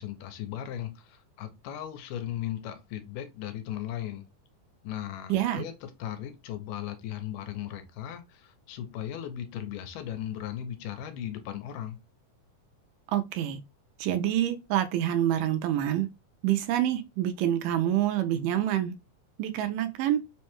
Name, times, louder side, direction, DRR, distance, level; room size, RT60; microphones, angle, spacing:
voice 1, 0.0-4.3 4.8-12.0, left 11 dB, 85° left, 2.2 m, -37 dB
voice 2, 5.3-5.6 13.1-13.6 14.0-16.1 16.4-18.9 19.4-20.2, right 12 dB, 85° right, 2.1 m, -27 dB
5.3 x 2.2 x 2.9 m
omnidirectional pair, 3.7 m